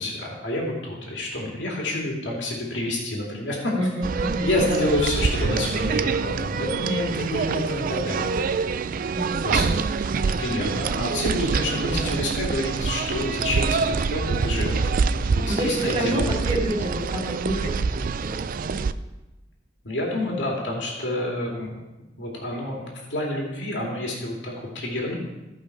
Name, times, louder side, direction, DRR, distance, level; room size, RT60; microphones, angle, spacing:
voice 1, 0.0-3.7 4.4-8.3 8.6-8.8 9.4-9.6 10.2-16.3 19.8-21.8 22.2-25.2, left 1 dB, 85° left, -2 dB, 2.4 m, -28 dB
voice 2, 3.7-4.9 6.8-7.2 9.1-9.8 11.9-12.2 15.5-18.8, right 1 dB, 35° right, -4 dB, 1.8 m, -29 dB
sound 1, 4.0-18.9, right 5 dB, 50° right, 0.4 m, -26 dB
15.5 x 5.6 x 4.7 m, 1.1 s
head